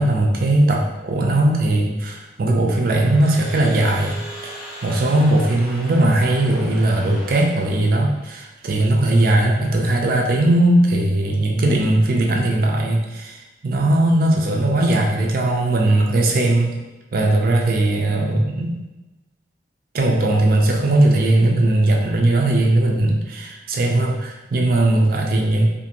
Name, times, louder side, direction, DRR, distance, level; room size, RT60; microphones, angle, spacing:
voice 1, 0.0-4.2 4.4-4.5 4.8-16.8 17.1-18.8 19.9-25.7, right 1 dB, 50° right, 0 dB, 0.4 m, -18 dB
Crowd / Alarm, 2.6-8.2, right 1 dB, 5° right, 0.6 m, -38 dB
2.5 x 2.5 x 2.8 m, 1.1 s
head